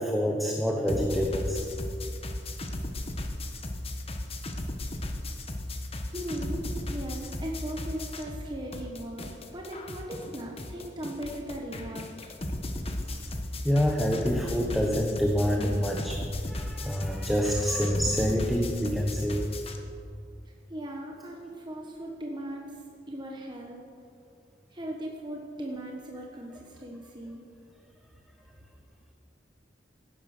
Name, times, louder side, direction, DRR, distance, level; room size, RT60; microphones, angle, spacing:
voice 1, 0.0-1.6 13.6-16.2 16.5-19.5, equal, ahead, 0 dB, 1.1 m, -27 dB
sound 1, 0.9-8.5 8.7-19.8, left 1 dB, 35° left, 1.3 m, -36 dB
voice 2, 6.0-12.3 20.7-22.8 23.1-23.8 24.7-27.4, right 1 dB, 25° right, -1 dB, 1.3 m, -38 dB
16.5 x 9.9 x 6.7 m, 2.4 s
head